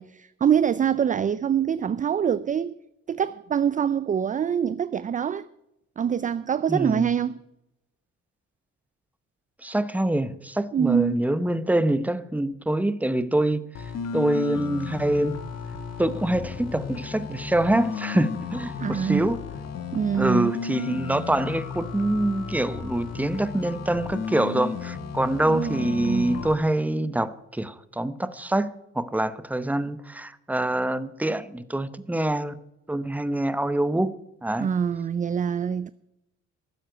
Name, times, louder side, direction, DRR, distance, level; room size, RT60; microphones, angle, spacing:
voice 1, 0.0-2.8 3.1-5.5 6.0-7.4 10.7-11.3 18.8-19.3 19.9-20.5 25.4-26.4 34.6-35.9, right 8 dB, 25° right, 0.4 m, -25 dB
voice 2, 6.7-7.1 9.6-13.7 14.1-15.4 16.0-19.4 20.2-32.6 32.9-34.7, right 1 dB, 5° right, 0.8 m, -25 dB
sound 1, 13.7-26.5, left 6 dB, 55° left, 1.5 m, -34 dB
12.5 x 7.5 x 9.1 m
cardioid pair, 90°, 30 cm